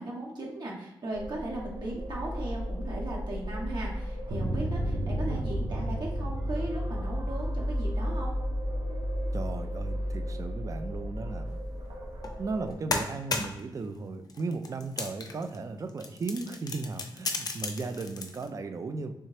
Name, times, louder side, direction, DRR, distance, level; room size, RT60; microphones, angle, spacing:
voice 1, 0.0-8.3, right 1 dB, 55° right, -3 dB, 1.1 m, -37 dB
sound 1, 1.1-12.7, equal, 75° right, 0.7 m, -33 dB
voice 2, 9.3-11.6 12.4-19.1, right 3 dB, 40° right, 8 dB, 0.4 m, -36 dB
sound 2, 12.2-12.4 12.7-13.7 14.3-15.6 15.9-18.5, left 3 dB, 50° left, 0.5 m, -34 dB
3.3 x 2.7 x 3.2 m, 0.92 s
cardioid pair, 75°, 9 cm